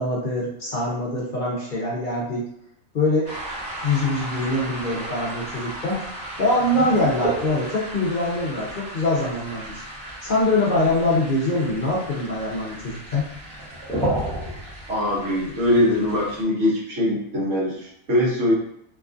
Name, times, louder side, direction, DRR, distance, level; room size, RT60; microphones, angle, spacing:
voice 1, 0.0-2.4 2.9-3.3 3.8-6.0 6.4-9.8 10.2-13.2, left 2 dB, 50° left, -5 dB, 0.6 m, -23 dB
sound 1, 3.2-16.4, right 1 dB, 5° left, 0.7 m, -33 dB
voice 2, 14.9-18.5, left 1 dB, 65° right, -6 dB, 1.3 m, -22 dB
2.9 x 2.3 x 2.4 m, 0.75 s
omnidirectional pair, 1.4 m